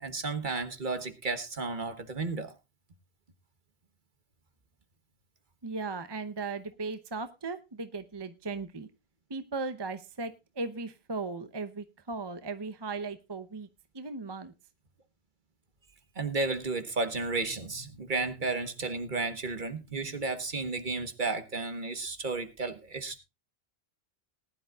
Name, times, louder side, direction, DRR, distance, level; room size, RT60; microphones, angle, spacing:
voice 1, 0.0-2.5 16.2-23.2, right 3 dB, 50° right, 10 dB, 1.5 m, -33 dB
voice 2, 5.6-8.9 9.3-13.7 13.9-14.5, right 3 dB, 25° right, 10 dB, 0.8 m, -37 dB
19.5 x 11.0 x 2.3 m, 0.25 s
omnidirectional pair, 1.0 m